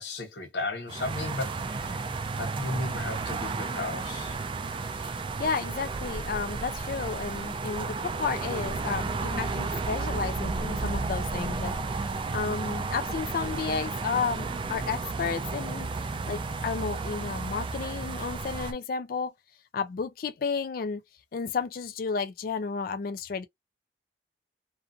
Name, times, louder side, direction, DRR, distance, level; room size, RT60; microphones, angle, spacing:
voice 1, 0.0-2.0 2.4-4.3, left 2 dB, 75° left, 1.0 m, -35 dB
sound 1, 0.9-18.7, right 3 dB, 30° right, 0.3 m, -32 dB
voice 2, 5.0-15.9 16.2-19.3 19.7-21.0 21.3-23.5, left 5 dB, 55° left, 0.4 m, -32 dB
2.5 x 2.4 x 2.4 m
head